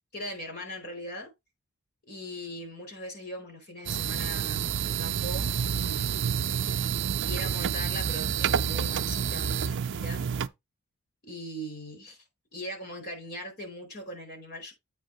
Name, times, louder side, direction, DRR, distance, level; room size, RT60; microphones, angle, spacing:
voice 1, 0.1-1.3 2.1-6.8 7.2-10.2 11.3-12.2 12.5-14.7, equal, 45° left, 4.4 m, -40 dB
sound 1, 3.9-10.5, right 7 dB, 55° right, 0.5 m, -29 dB
8.4 x 3.5 x 5.2 m
head